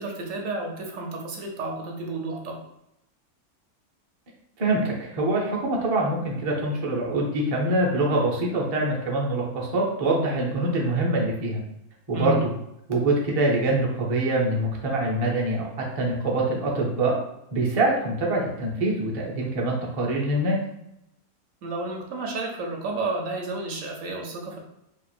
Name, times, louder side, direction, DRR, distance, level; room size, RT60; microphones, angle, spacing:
voice 1, 0.0-2.6 12.1-12.4 21.6-24.6, right 2 dB, 70° right, 1 dB, 0.9 m, -31 dB
voice 2, 4.6-11.6 12.1-12.5 12.9-15.7 16.0-17.1 17.5-20.6, right 2 dB, 40° right, -2 dB, 0.5 m, -24 dB
2.8 x 2.4 x 4.3 m, 0.82 s
omnidirectional pair, 1.6 m